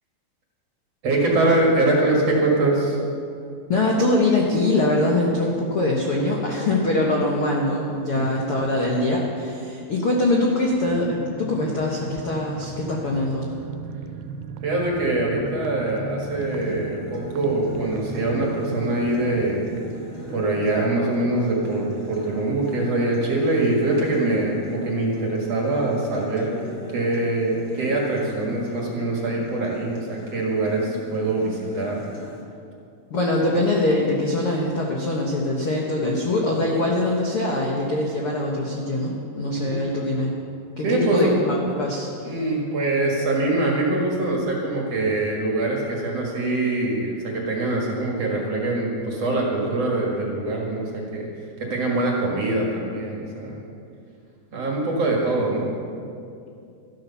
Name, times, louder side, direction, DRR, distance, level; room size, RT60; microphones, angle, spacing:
voice 1, 1.0-3.0 8.1-8.3 14.6-19.7 20.3-26.5 26.9-32.0 39.5-39.8 40.8-41.3 42.2-51.3 51.6-53.6 54.5-55.7, right 2 dB, 50° right, -2 dB, 2.2 m, -23 dB
voice 2, 3.7-13.5 33.1-40.3 40.8-42.3, left 2 dB, 70° left, -2 dB, 1.3 m, -23 dB
sound 1, 10.7-23.0 23.3-23.4 23.7-24.0, right 4 dB, 80° right, 2.6 m, -38 dB
Acoustic guitar, 16.4-32.4, left 2 dB, 35° left, 1.7 m, -41 dB
13.5 x 12.5 x 5.7 m, 2.5 s
omnidirectional pair, 4.7 m